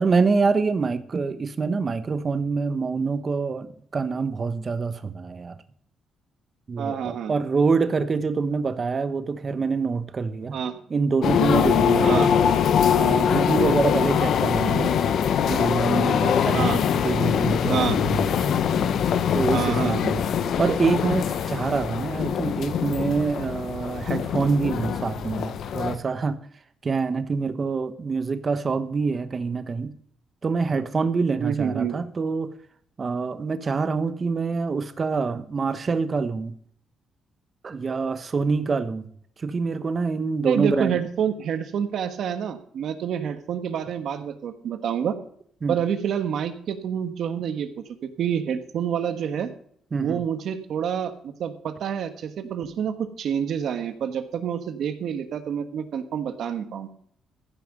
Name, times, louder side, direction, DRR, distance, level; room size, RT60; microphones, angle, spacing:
voice 1, 0.0-3.7 3.9-5.6 6.7-10.6 10.9-12.3 13.0-14.9 15.5-18.6 19.3-26.4 26.8-29.9 30.4-32.5 33.0-36.5 37.6-39.1 39.4-41.0 45.6-45.8 49.9-50.2, right 4 dB, 40° right, 11 dB, 1.1 m, -25 dB
voice 2, 6.8-7.3 10.5-10.8 12.0-12.3 16.5-16.8 17.7-18.0 19.5-20.2 31.4-32.0 40.4-45.2 45.7-49.5 50.0-56.9, right 8 dB, 70° right, 9 dB, 1.3 m, -28 dB
sound 1, 11.2-26.0, left 8 dB, 70° left, 0.9 m, -23 dB
15.0 x 5.9 x 5.3 m, 0.62 s
cardioid pair, 85°, 0 cm